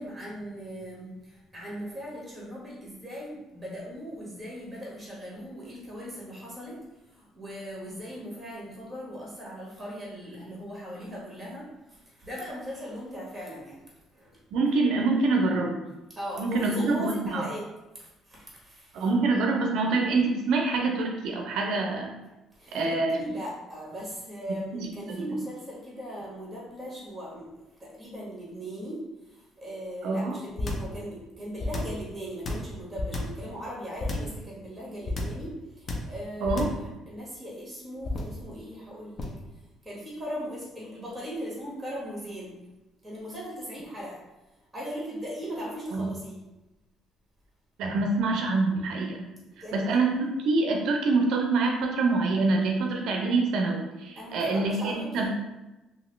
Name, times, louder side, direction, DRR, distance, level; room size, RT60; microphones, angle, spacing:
voice 1, 0.0-6.8 7.1-11.6 11.9-13.8 14.1-14.3 16.2-17.6 17.9-19.0 22.5-39.3 39.8-42.6 43.0-44.2 44.7-46.4 49.6-50.0 54.2-55.3, equal, 10° right, -6 dB, 1.5 m, -39 dB
voice 2, 14.5-15.8 16.4-17.5 18.9-22.1 22.7-23.2 24.8-25.4 30.0-30.4 36.4-36.7 45.9-46.1 47.8-49.2 49.7-55.3, right 3 dB, 75° right, 1 dB, 0.4 m, -26 dB
sound 1, 30.6-30.9 31.6-32.0 32.4-33.4 34.0-34.4 35.0-35.4 35.9-36.2 36.4-36.9 38.0-38.4 39.2-39.5, left 2 dB, 40° left, 0.6 m, -31 dB
2.8 x 2.6 x 3.1 m, 1.0 s
cardioid pair, 100°, 0 cm